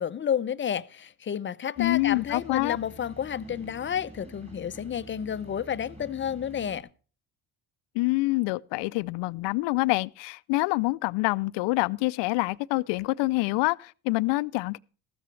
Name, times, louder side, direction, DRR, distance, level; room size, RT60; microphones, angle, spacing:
voice 1, 0.0-6.9, left 8 dB, 30° left, 0.5 m, -31 dB
voice 2, 1.8-2.8 7.9-14.8, left 22 dB, 75° left, 0.5 m, -26 dB
sound 1, 1.8-6.8, equal, 15° right, 3.3 m, -47 dB
14.0 x 13.0 x 3.2 m
supercardioid pair, 75°, 43 cm